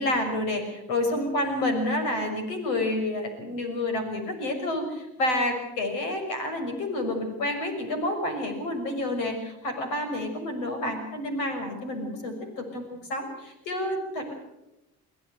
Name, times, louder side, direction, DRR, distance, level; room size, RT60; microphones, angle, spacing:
voice 1, 0.0-14.3, left 1 dB, 80° left, 6 dB, 6.1 m, -29 dB
23.5 x 16.0 x 8.1 m, 0.89 s
supercardioid pair, 70°, 33 cm